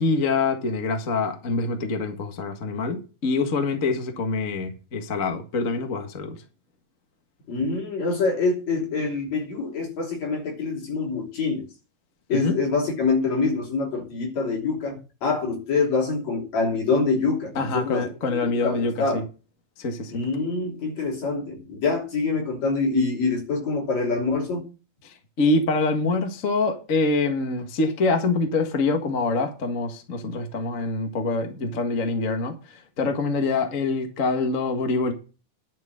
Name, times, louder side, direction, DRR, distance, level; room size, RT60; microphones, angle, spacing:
voice 1, 0.0-6.4 12.3-12.6 17.5-19.2 19.8-20.1 25.0-35.1, left 3 dB, 35° left, 1.3 m, -25 dB
voice 2, 7.5-11.7 12.3-18.0 18.3-19.2 20.1-24.6, left 4 dB, 55° left, 4.5 m, -25 dB
11.0 x 6.3 x 6.3 m
omnidirectional pair, 3.7 m